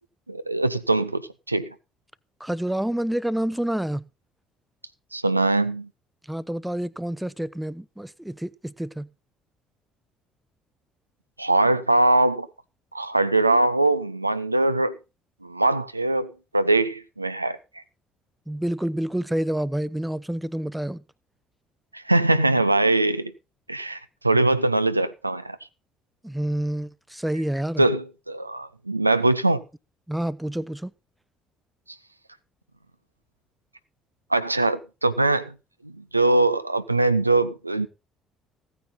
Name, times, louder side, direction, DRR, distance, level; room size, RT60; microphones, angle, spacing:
voice 1, 0.3-1.2 1.5-1.7 5.1-5.9 11.4-12.5 12.9-15.0 15.4-17.6 21.9-23.3 23.7-25.6 27.8-29.6 34.3-35.5 35.8-37.9, right 2 dB, 85° right, 0.6 m, -22 dB
voice 2, 2.4-4.0 6.3-9.1 18.5-21.0 26.2-27.8 30.1-30.9, right 1 dB, 5° right, 0.8 m, -28 dB
16.0 x 9.5 x 4.0 m
figure-of-eight pair, 50°, 0 cm